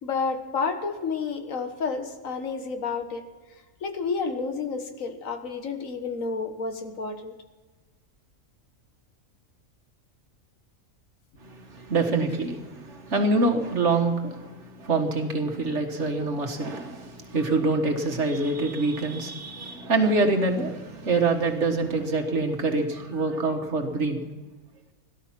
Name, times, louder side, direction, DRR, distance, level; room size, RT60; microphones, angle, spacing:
voice 1, 0.0-3.2 3.8-7.3, left 4 dB, 80° left, 6 dB, 1.8 m, -30 dB
voice 2, 11.4-24.2, right 3 dB, 60° right, 4 dB, 1.8 m, -25 dB
17.5 x 12.0 x 5.9 m, 1.3 s
omnidirectional pair, 1.3 m